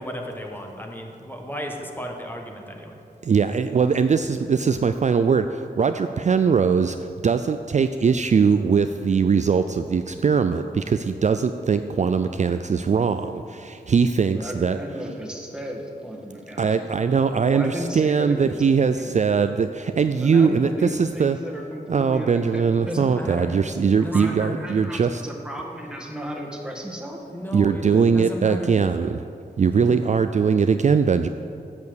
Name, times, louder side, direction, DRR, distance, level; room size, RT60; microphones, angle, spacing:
voice 1, 0.0-2.9 23.0-23.7 24.0-24.7 27.3-28.7 29.9-30.0, equal, 10° left, 2 dB, 1.4 m, -34 dB
voice 2, 3.2-7.0 7.2-14.8 16.6-21.4 21.9-25.2 27.5-29.2 29.6-31.3, right 6 dB, 45° right, 9 dB, 0.4 m, -21 dB
voice 3, 14.3-19.2 20.2-23.1 24.0-27.2, equal, 5° right, -1 dB, 1.8 m, -34 dB
8.3 x 6.9 x 8.0 m, 2.6 s
wide cardioid pair, 70°, 17 cm